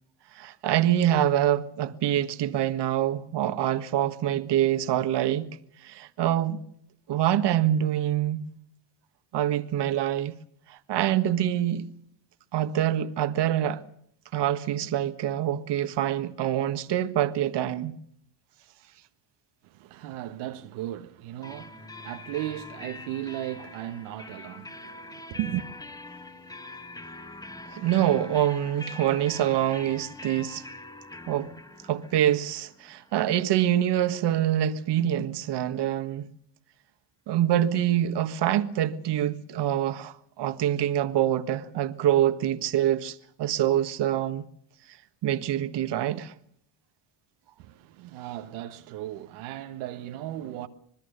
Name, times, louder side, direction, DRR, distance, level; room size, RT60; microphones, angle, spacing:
voice 1, 0.3-5.6 5.8-6.6 7.1-8.5 9.3-10.3 10.7-11.9 12.5-13.8 14.3-18.0 27.7-30.6 31.3-31.5 31.9-36.3 37.3-44.4 45.2-46.3, right 11 dB, 55° right, 1.7 m, -25 dB
voice 2, 19.6-25.7 47.6-50.7, right 13 dB, 85° right, 1.5 m, -36 dB
sound 1, 21.4-35.0, left 2 dB, 10° left, 1.8 m, -44 dB
26.5 x 20.0 x 6.8 m
supercardioid pair, 95°, 48 cm